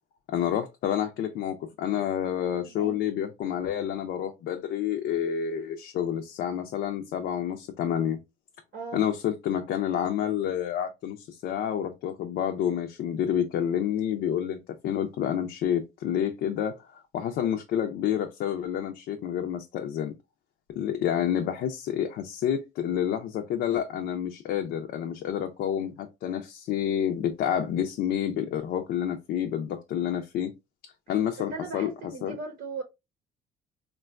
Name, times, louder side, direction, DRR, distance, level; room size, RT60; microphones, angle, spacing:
voice 1, 0.3-8.2 8.9-20.1 20.8-30.5 31.1-31.9 32.2-32.3, left 9 dB, 70° left, 0.5 m, -29 dB
voice 2, 2.6-3.0 8.7-9.0 31.5-32.8, right 4 dB, 65° right, 0.8 m, -38 dB
3.7 x 2.2 x 2.4 m
cardioid pair, 110°, 17 cm